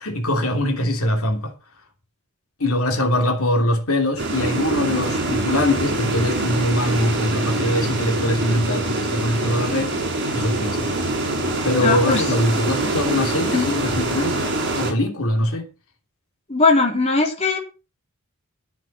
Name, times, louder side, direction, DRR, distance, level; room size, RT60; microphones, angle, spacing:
voice 1, 0.0-1.5 2.6-9.9 10.3-10.9 11.6-15.7, left 1 dB, 75° left, 3.0 m, -22 dB
sound 1, 4.2-14.9, right 2 dB, 55° right, 6.4 m, -24 dB
voice 2, 11.8-12.2 13.5-13.7 16.5-17.6, left 3 dB, 30° left, 3.7 m, -19 dB
13.5 x 7.6 x 6.4 m
head